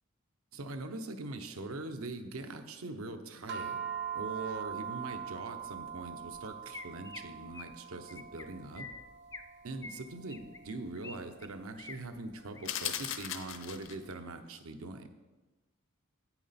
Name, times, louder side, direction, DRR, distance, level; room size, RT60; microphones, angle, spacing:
voice 1, 0.5-3.8 4.1-8.9 9.6-15.1, right 2 dB, 90° right, 7 dB, 0.8 m, -42 dB
sound 1, 3.5-14.0, right 8 dB, 55° right, 0.6 m, -43 dB
Chirp tweet, 6.3-6.4 6.7-7.2 7.5-7.8 8.1-8.4 8.7-9.5 9.8-11.1 11.4-12.0 12.4-12.7 13.1-13.4, left 3 dB, 15° left, 0.4 m, -47 dB
sound 2, 12.6-14.1, left 10 dB, 60° left, 0.6 m, -37 dB
8.7 x 7.1 x 4.1 m, 1.2 s
head